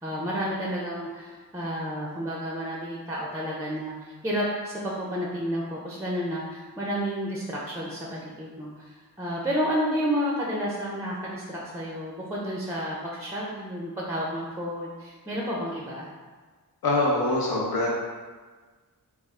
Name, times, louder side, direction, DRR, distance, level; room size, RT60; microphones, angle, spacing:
voice 1, 0.0-16.1, equal, 10° right, -4 dB, 0.4 m, -31 dB
voice 2, 16.8-17.9, left 2 dB, 80° left, -4 dB, 0.9 m, -24 dB
3.3 x 2.4 x 3.5 m, 1.4 s
wide cardioid pair, 145°, 36 cm